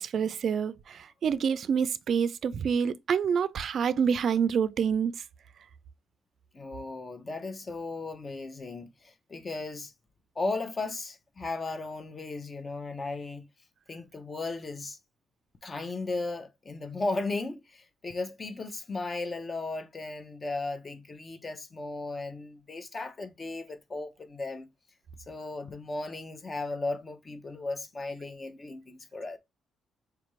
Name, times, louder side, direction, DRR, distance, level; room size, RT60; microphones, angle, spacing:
voice 1, 0.0-5.1, right 7 dB, 60° right, 0.3 m, -27 dB
voice 2, 6.5-9.9 10.4-13.5 13.9-15.0 15.6-24.7 25.3-29.4, left 3 dB, 35° left, 0.7 m, -36 dB
4.6 x 2.5 x 3.1 m
cardioid pair, 85°, 0 cm